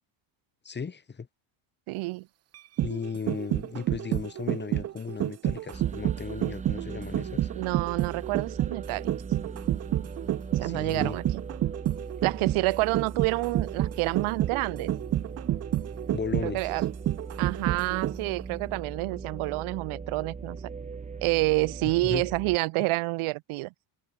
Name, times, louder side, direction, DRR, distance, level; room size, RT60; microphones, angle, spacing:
voice 1, 0.6-1.3 2.8-7.5 10.6-11.2 16.1-16.7 22.0-22.2, left 5 dB, 20° left, 4.1 m, -35 dB
voice 2, 1.9-2.3 7.6-9.1 10.5-11.4 12.2-14.9 16.4-16.8 17.4-20.7 21.2-23.7, right 22 dB, 80° right, 2.3 m, -28 dB
sound 1, 2.5-18.4 18.7-18.8, right 13 dB, 35° right, 0.5 m, -29 dB
sound 2, 5.7-22.6, right 5 dB, 15° right, 1.1 m, -40 dB
cardioid pair, 160°, 50 cm